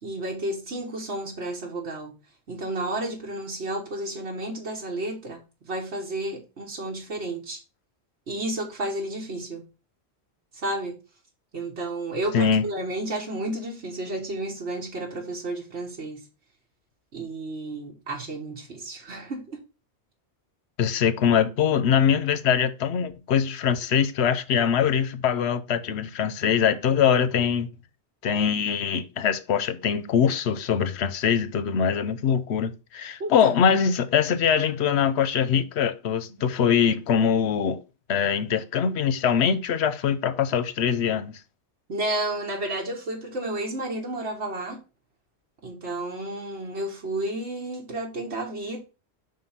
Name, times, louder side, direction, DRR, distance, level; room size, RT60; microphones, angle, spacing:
voice 1, 0.0-2.1 2.5-7.6 8.3-9.6 10.5-11.0 11.5-16.2 17.1-19.6 33.2-33.5 36.3-36.5 41.9-44.8 45.6-48.8, right 1 dB, 80° right, 1.7 m, -32 dB
voice 2, 12.3-12.7 20.8-27.7 28.2-37.8 38.1-41.4, left 7 dB, 80° left, 0.9 m, -23 dB
5.2 x 3.8 x 5.5 m
omnidirectional pair, 1.1 m